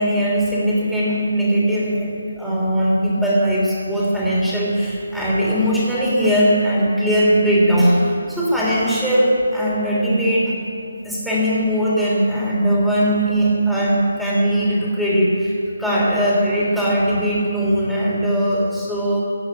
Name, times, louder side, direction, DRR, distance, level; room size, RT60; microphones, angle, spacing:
voice 1, 0.0-10.5 11.0-15.5 15.8-19.2, equal, ahead, -7 dB, 3.3 m, -19 dB
15.0 x 8.0 x 9.5 m, 2.5 s
figure-of-eight pair, 155°, 0 cm